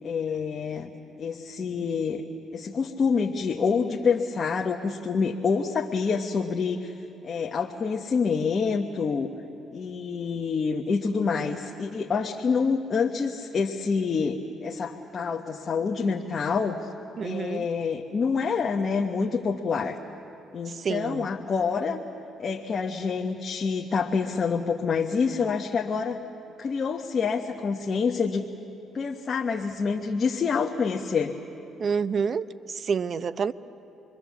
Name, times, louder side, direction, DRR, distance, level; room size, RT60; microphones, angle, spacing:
voice 1, 0.0-0.9 1.2-2.2 2.5-6.9 7.2-9.3 9.7-16.8 17.2-20.0 20.5-22.0 22.4-26.2 26.6-28.5 28.9-31.3, left 5 dB, 45° left, 2 dB, 1.2 m, -27 dB
voice 2, 17.2-17.7 20.7-21.3 31.8-33.5, right 6 dB, 50° right, 15 dB, 0.7 m, -28 dB
28.5 x 22.0 x 7.3 m, 2.8 s
supercardioid pair, 70°, 0 cm